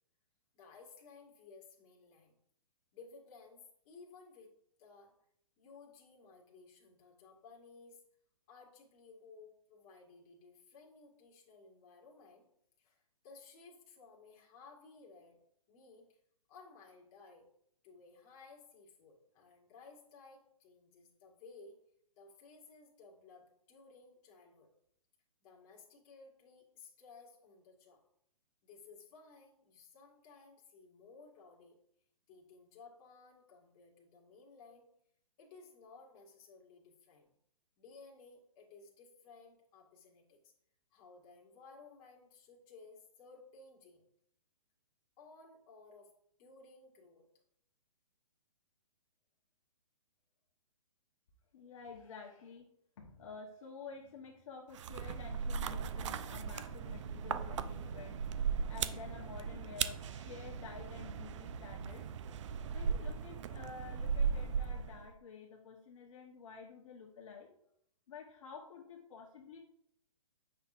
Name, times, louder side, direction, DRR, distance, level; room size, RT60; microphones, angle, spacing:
voice 1, 0.5-2.3 2.9-4.5 4.8-5.1 5.6-8.0 8.5-12.5 12.8-15.4 15.7-16.2 16.5-17.5 17.8-21.8 22.2-24.7 25.4-28.0 28.6-31.8 32.3-34.9 35.4-37.3 37.8-40.5 40.9-44.0 45.2-46.1 46.4-47.3, left 4 dB, 30° left, -1 dB, 1.8 m, -58 dB
voice 2, 51.5-52.7 53.0-58.2 58.7-62.0 62.7-67.5 68.1-69.6, left 5 dB, 60° left, -2 dB, 1.1 m, -50 dB
sound 1, 54.7-65.1, right 6 dB, 55° right, 0.4 m, -38 dB
8.3 x 5.8 x 2.5 m, 0.72 s
hypercardioid pair, 140°, 19 cm